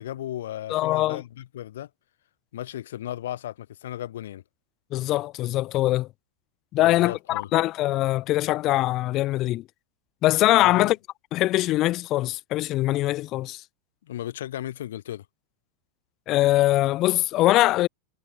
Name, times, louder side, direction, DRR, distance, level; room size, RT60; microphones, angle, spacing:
voice 1, 0.0-1.9 2.5-4.4 6.8-7.5 10.6-10.9 14.0-15.3, left 12 dB, 60° left, 2.1 m, -35 dB
voice 2, 0.7-1.2 4.9-6.1 6.7-9.6 10.2-11.0 11.3-13.6 16.3-17.9, left 16 dB, 35° left, 2.0 m, -22 dB
figure-of-eight pair, 90°, 0 cm